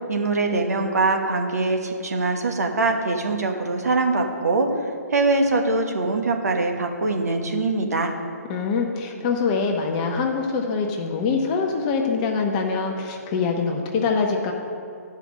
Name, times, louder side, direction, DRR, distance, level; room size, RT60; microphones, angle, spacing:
voice 1, 0.1-4.7 5.1-8.1, right 3 dB, 65° right, 3 dB, 1.2 m, -23 dB
voice 2, 8.5-14.5, left 5 dB, 25° left, 2 dB, 1.0 m, -24 dB
11.5 x 5.5 x 6.2 m, 2.5 s
figure-of-eight pair, 135°, 9 cm